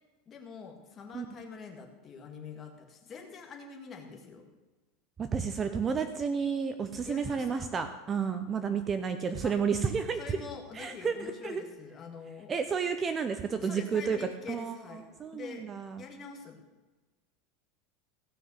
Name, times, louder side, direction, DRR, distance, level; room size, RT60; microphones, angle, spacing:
voice 1, 0.3-4.5 7.1-7.7 9.4-9.5 10.2-12.5 13.6-15.1 15.3-15.6 16.0-16.6, left 5 dB, 25° left, 3 dB, 2.1 m, -45 dB
voice 2, 5.2-10.4 10.7-11.6 12.5-16.1, right 6 dB, 20° right, 9 dB, 0.7 m, -31 dB
16.0 x 6.0 x 8.0 m, 1.2 s
supercardioid pair, 155°, 0 cm